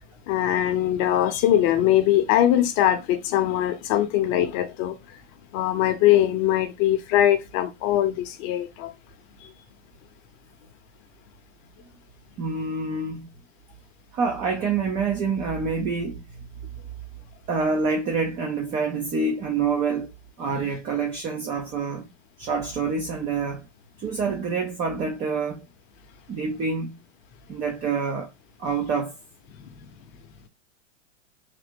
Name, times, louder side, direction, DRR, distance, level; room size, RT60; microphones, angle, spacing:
voice 1, 0.3-5.2 5.5-8.9 9.4-9.5, left 12 dB, 35° left, 0.7 m, -22 dB
voice 2, 12.4-13.3 14.1-16.4 17.5-20.1 20.4-22.1 22.4-23.7 24.0-25.6 26.3-26.9 27.5-28.3 28.6-29.2, right 4 dB, 20° right, 0.4 m, -27 dB
3.7 x 2.1 x 3.5 m
hypercardioid pair, 140°, 38 cm